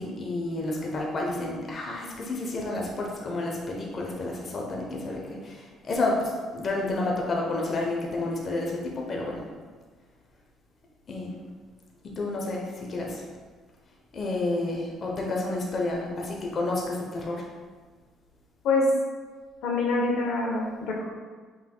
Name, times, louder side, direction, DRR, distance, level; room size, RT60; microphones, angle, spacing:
voice 1, 0.0-9.4 11.1-11.3 12.2-13.2 14.1-17.4, left 2 dB, 40° left, -1 dB, 0.7 m, -30 dB
voice 2, 19.6-21.0, left 3 dB, 80° left, -1 dB, 0.8 m, -25 dB
5.7 x 3.3 x 2.2 m, 1.5 s
cardioid pair, 105°, 0 cm